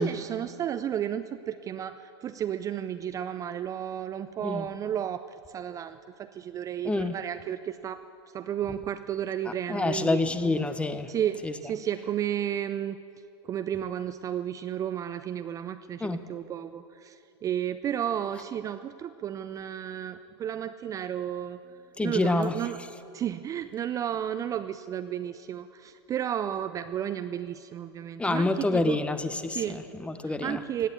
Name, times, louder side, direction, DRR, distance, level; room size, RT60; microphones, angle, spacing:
voice 1, 0.0-5.2 5.5-8.0 8.3-10.2 11.1-13.0 13.4-21.6 22.0-22.8 23.1-29.0 29.5-29.8 30.2-30.9, right 10 dB, 25° right, 10 dB, 0.4 m, -32 dB
voice 2, 6.8-7.2 9.7-11.1 11.4-11.5 16.0-16.2 22.0-22.6 28.2-30.6, left 2 dB, 10° left, 12 dB, 0.7 m, -27 dB
17.0 x 9.2 x 8.4 m, 2.6 s
hypercardioid pair, 110°, 14 cm